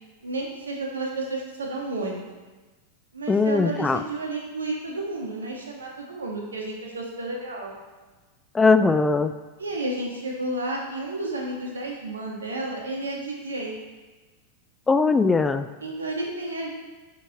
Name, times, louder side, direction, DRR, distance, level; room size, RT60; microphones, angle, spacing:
voice 1, 0.2-2.2 3.1-7.7 9.6-13.7 15.8-16.7, right 2 dB, 70° right, -1 dB, 1.6 m, -31 dB
voice 2, 3.3-4.0 8.5-9.3 14.9-15.7, left 4 dB, 15° left, 10 dB, 0.4 m, -20 dB
9.9 x 5.6 x 3.0 m, 1.3 s
figure-of-eight pair, 90°, 0 cm